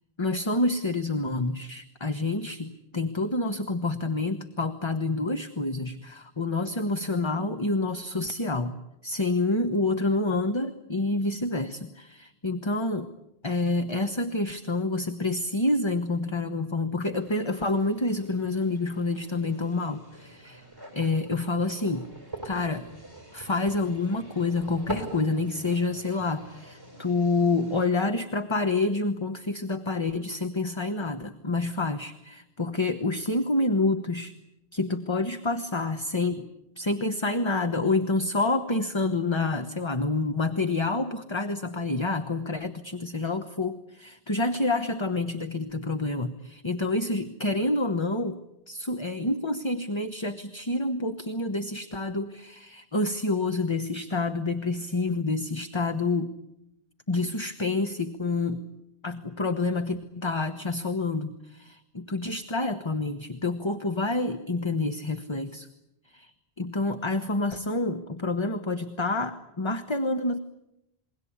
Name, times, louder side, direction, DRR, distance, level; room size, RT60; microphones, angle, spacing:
voice 1, 0.2-8.7 9.0-13.1 13.4-20.6 20.9-22.1 22.4-22.9 23.3-34.4 34.7-36.5 36.8-48.4 48.7-56.3 57.1-58.7 59.0-65.7 66.1-70.4, left 2 dB, 25° left, 8 dB, 1.2 m, -28 dB
sound 1, 17.1-27.9, right 1 dB, 20° right, 6.2 m, -44 dB
28.0 x 22.0 x 8.7 m, 0.85 s
omnidirectional pair, 1.1 m